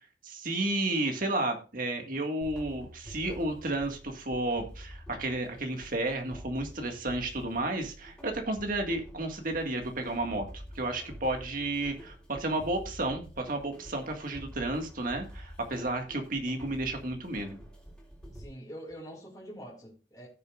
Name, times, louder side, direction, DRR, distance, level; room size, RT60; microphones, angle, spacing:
voice 1, 0.2-17.6, right 2 dB, 50° right, 4 dB, 1.9 m, -32 dB
sound 1, 2.4-18.5, equal, 5° left, 3.4 m, -48 dB
voice 2, 18.3-20.3, equal, 20° left, -5 dB, 2.8 m, -45 dB
16.5 x 6.7 x 2.5 m, 0.35 s
head